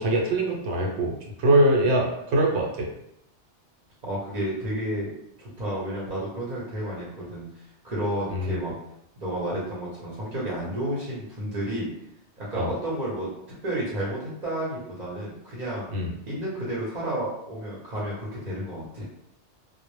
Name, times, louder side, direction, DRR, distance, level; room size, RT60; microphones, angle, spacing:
voice 1, 0.0-2.9 8.3-8.5 12.5-12.7 15.9-16.1, right 1 dB, 75° right, -1 dB, 0.9 m, -23 dB
voice 2, 4.0-5.1 5.4-7.5 7.8-8.7 9.2-11.9 12.4-13.3 13.6-15.9 16.2-19.1, right 1 dB, 45° right, -6 dB, 0.7 m, -31 dB
2.0 x 2.0 x 3.0 m, 0.77 s
omnidirectional pair, 1.2 m